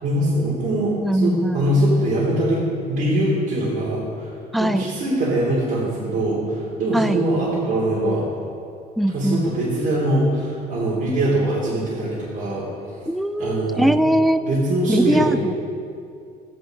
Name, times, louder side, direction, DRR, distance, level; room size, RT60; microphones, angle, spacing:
voice 1, 0.0-2.6 2.9-4.3 4.6-8.2 9.1-12.7 13.4-14.0 14.4-15.4, right 1 dB, 55° right, -8 dB, 3.1 m, -22 dB
voice 2, 1.0-1.8 4.5-4.8 6.9-7.2 9.0-9.5 13.1-14.4 14.9-15.7, right 1 dB, ahead, 10 dB, 0.4 m, -21 dB
13.0 x 9.4 x 3.8 m, 2.4 s
cardioid pair, 110°, 17 cm